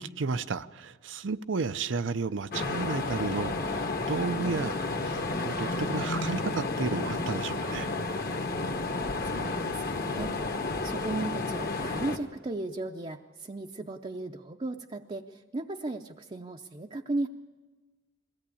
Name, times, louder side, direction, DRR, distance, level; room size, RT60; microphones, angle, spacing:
voice 1, 0.0-7.9, right 4 dB, 80° right, 0.6 m, -33 dB
sound 1, 2.5-12.2, left 3 dB, 55° left, 1.4 m, -31 dB
voice 2, 9.2-10.3 10.8-17.3, right 2 dB, 30° right, 0.6 m, -36 dB
21.5 x 16.5 x 8.5 m
head